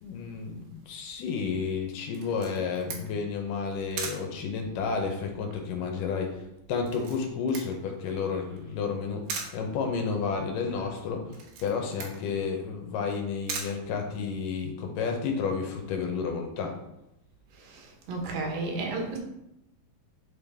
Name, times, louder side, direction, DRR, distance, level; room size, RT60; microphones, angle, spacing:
voice 1, 0.0-6.4 6.7-9.2 9.5-11.4 11.6-16.8, left 5 dB, 75° left, 3 dB, 2.2 m, -31 dB
Camera, 2.1-14.6, right 5 dB, 75° right, 2.5 m, -42 dB
voice 2, 17.5-19.2, right 3 dB, 90° right, 1 dB, 3.0 m, -33 dB
8.2 x 3.8 x 3.4 m, 0.85 s
omnidirectional pair, 4.1 m